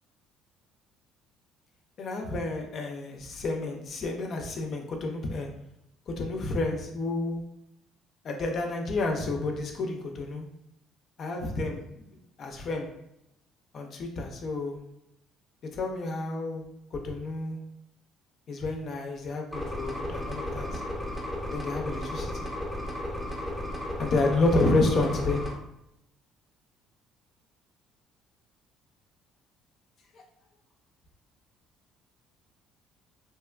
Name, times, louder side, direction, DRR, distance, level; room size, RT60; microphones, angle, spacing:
voice 1, 2.0-5.5 6.1-7.4 8.2-10.4 11.2-12.1 12.4-12.9 13.7-14.8 15.7-16.6 16.9-17.6 18.5-20.8 21.5-22.5 24.0-25.4, left 2 dB, 45° left, 2 dB, 0.4 m, -30 dB
sound 1, 19.5-25.5, left 1 dB, 5° right, 0.6 m, -34 dB
2.8 x 2.2 x 2.2 m, 0.81 s
cardioid pair, 125°, 0 cm